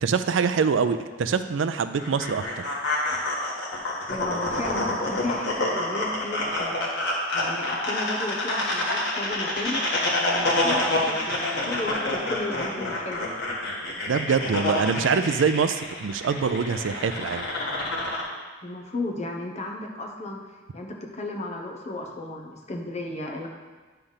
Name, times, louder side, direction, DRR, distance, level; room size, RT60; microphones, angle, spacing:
voice 1, 0.0-2.4 14.1-17.5, right 5 dB, 80° right, 10 dB, 0.4 m, -24 dB
sound 1, 2.0-18.2, left 1 dB, 60° left, 1.5 m, -28 dB
voice 2, 4.1-9.8 10.2-13.3 18.6-20.4 20.7-23.5, left 2 dB, 35° left, 1 dB, 1.0 m, -34 dB
10.0 x 3.4 x 5.6 m, 1.4 s
head